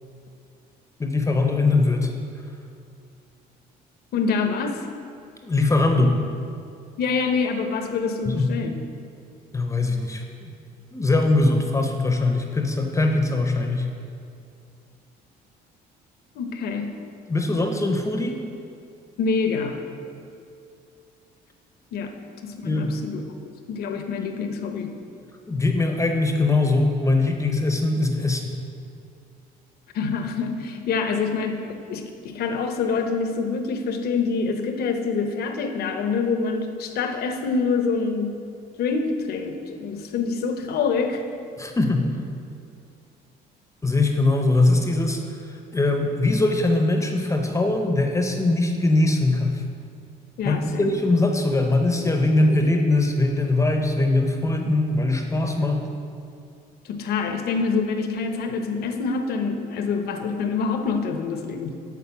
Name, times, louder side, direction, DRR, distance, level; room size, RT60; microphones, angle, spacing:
voice 1, 1.0-2.1 5.4-6.2 8.3-8.5 9.5-10.5 10.9-13.9 17.3-18.3 22.6-22.9 25.5-28.5 41.6-42.1 43.8-49.6 50.4-55.8, left 2 dB, 15° left, 4 dB, 0.7 m, -21 dB
voice 2, 4.1-4.9 7.0-8.8 16.4-16.9 19.2-19.8 21.9-22.1 22.4-23.2 23.7-24.9 29.9-38.4 38.8-41.2 50.4-50.9 56.8-61.7, left 4 dB, 70° left, 6 dB, 0.8 m, -26 dB
8.4 x 4.2 x 7.0 m, 2.4 s
cardioid pair, 110°, 17 cm